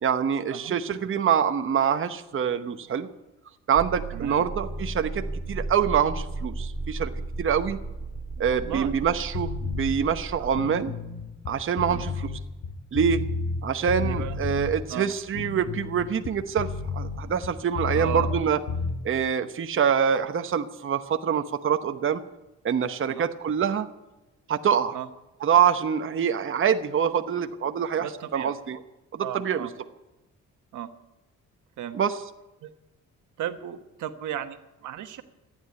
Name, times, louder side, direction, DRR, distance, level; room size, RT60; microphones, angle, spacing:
voice 1, 0.0-3.1 3.7-7.1 7.4-7.8 8.4-10.9 11.5-12.3 12.9-13.2 13.6-18.6 19.0-22.2 22.6-23.9 24.5-24.9 25.4-28.1 28.3-28.8 29.1-29.7 31.9-32.2, right 7 dB, 45° right, 8 dB, 1.0 m, -25 dB
sound 1, 3.8-10.6, right 2 dB, 20° right, 2.5 m, -35 dB
voice 2, 4.1-4.4 8.4-8.9 10.4-10.6 11.9-12.1 14.0-14.3 14.9-15.1 17.9-18.3 23.1-23.3 24.9-25.1 28.0-28.5 29.2-29.7 30.7-30.9 31.8-32.0 32.6-32.7 33.4-35.2, right 10 dB, 80° right, 8 dB, 1.3 m, -35 dB
sound 2, 9.3-9.9 10.5-13.6 13.9-14.7 15.3-18.4 18.7-18.9, left 4 dB, 75° left, 3.3 m, -31 dB
14.5 x 10.0 x 9.6 m, 1.0 s
cardioid pair, 90°, 30 cm